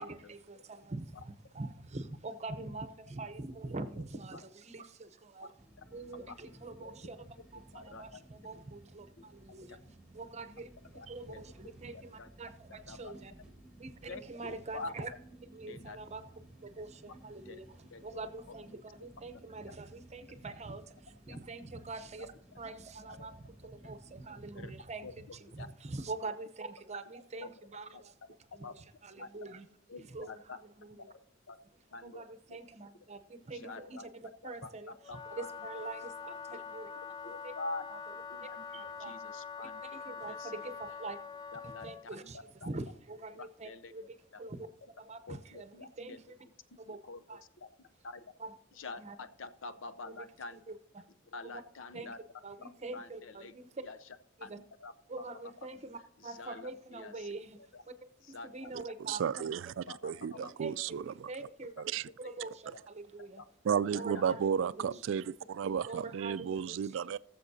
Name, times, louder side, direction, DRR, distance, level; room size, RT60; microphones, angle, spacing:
voice 1, 0.0-5.5 5.9-9.8 10.1-10.7 11.1-13.3 13.8-15.1 15.5-16.2 16.6-17.7 18.0-28.1 28.5-29.7 30.1-31.1 32.0-35.0 35.3-36.9 37.2-37.5 37.9-38.0 38.4-39.1 39.6-41.2 41.6-44.7 45.0-46.4 46.8-47.0 47.3-47.4 48.4-48.5 49.0-49.2 50.0-51.0 51.5-51.6 51.9-52.1 52.4-53.7 54.4-54.6 55.1-57.6 57.9-58.0 58.3-59.5 60.3-61.7 62.2-63.4 63.9-65.2 65.8-67.2, right 3 dB, 35° right, 0.8 m, -45 dB
sound 1, 5.6-24.8, right 1 dB, 5° right, 1.6 m, -57 dB
voice 2, 6.8-7.1 7.7-8.1 9.7-9.8 10.9-11.4 11.8-12.3 12.9-13.1 14.1-15.1 15.7-16.0 17.0-17.1 17.5-17.6 17.9-18.0 18.5-18.8 19.3-19.4 21.3-21.4 23.1-23.3 24.5-24.7 25.0-25.7 27.4-27.5 27.9-28.0 28.6-28.7 29.2-29.3 29.9-30.6 30.9-31.2 31.5-31.6 31.9-32.2 33.5-34.1 34.6-34.7 35.1-35.5 37.0-37.8 38.3-38.6 39.0-40.7 41.5-41.9 42.2-42.3 42.6-42.7 43.3-43.9 44.3-44.4 45.3-46.2 46.9-47.2 47.6-47.7 48.0-48.2 48.7-50.6 51.3-52.2 52.6-53.6 53.8-54.0 54.4-55.3 56.2-57.3 57.7-57.8 58.2-58.7 59.9-60.5 62.4-62.8 63.4-63.5 63.9-64.0 64.3-64.4 64.8-65.0, left 3 dB, 75° left, 0.7 m, -46 dB
Wind instrument woodwind instrument, 35.0-42.1, left 5 dB, 20° left, 0.4 m, -44 dB
voice 3, 58.7-61.3 61.8-62.1 63.6-67.2, right 7 dB, 70° right, 0.3 m, -33 dB
20.0 x 7.2 x 2.8 m
head